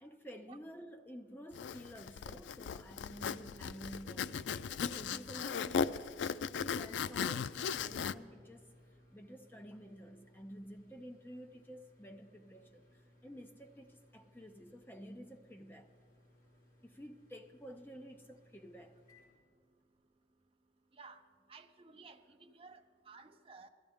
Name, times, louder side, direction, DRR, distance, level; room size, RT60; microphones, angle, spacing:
voice 1, 0.0-6.1 6.4-8.7 9.1-15.9 16.8-19.0, equal, 10° left, 0.6 m, -51 dB
Zipper (clothing), 1.5-8.1, left 6 dB, 90° left, 0.3 m, -37 dB
Microwave oven, 6.8-20.2, left 1 dB, 50° left, 2.4 m, -65 dB
voice 2, 21.5-23.7, right 4 dB, 30° right, 0.6 m, -55 dB
16.0 x 13.5 x 3.5 m
head